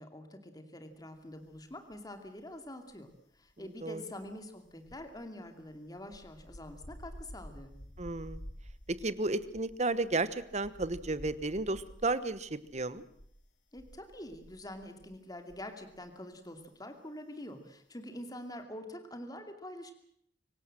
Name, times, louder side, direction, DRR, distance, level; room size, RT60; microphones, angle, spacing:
voice 1, 0.0-3.1 3.3-7.7 13.7-19.9, left 1 dB, 20° left, 6 dB, 2.7 m, -46 dB
sound 1, 1.5-2.3 2.5-16.1 16.3-16.6, equal, 75° left, 4.4 m, -52 dB
voice 2, 8.0-8.4 8.9-13.0, right 2 dB, 40° right, 15 dB, 1.2 m, -33 dB
25.5 x 18.0 x 7.7 m, 0.69 s
head